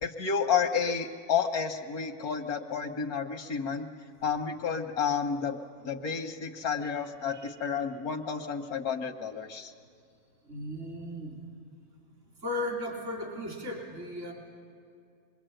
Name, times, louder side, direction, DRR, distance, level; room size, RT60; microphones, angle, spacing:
voice 1, 0.0-3.9 4.2-5.6 5.8-9.7, left 6 dB, 90° left, 2 dB, 1.7 m, -31 dB
voice 2, 10.4-11.4 12.4-14.3, left 1 dB, 55° right, 0 dB, 4.1 m, -36 dB
25.5 x 22.0 x 9.0 m, 2.4 s
omnidirectional pair, 1.5 m